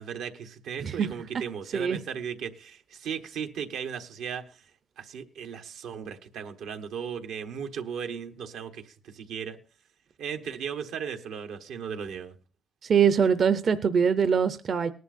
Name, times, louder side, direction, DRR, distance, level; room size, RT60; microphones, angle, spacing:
voice 1, 0.0-4.6 5.0-9.6 10.2-12.3, right 7 dB, 85° right, 5 dB, 1.1 m, -36 dB
voice 2, 12.8-14.9, right 7 dB, 50° right, 11 dB, 0.6 m, -23 dB
18.5 x 11.0 x 2.6 m, 0.38 s
cardioid pair, 90°, 0 cm